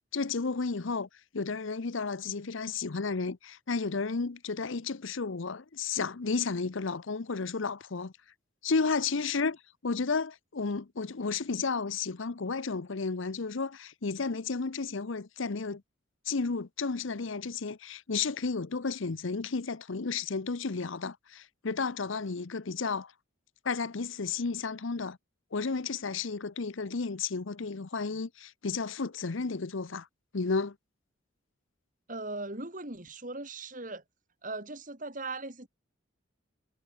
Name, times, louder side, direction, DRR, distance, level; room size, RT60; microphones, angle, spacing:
voice 1, 0.1-1.1 1.3-8.1 8.6-15.8 16.3-23.1 23.6-25.2 25.5-30.1 30.3-30.7, left 4 dB, 70° left, 0.8 m, -32 dB
voice 2, 32.1-34.0 34.4-35.7, right 2 dB, 40° right, 3.4 m, -39 dB
head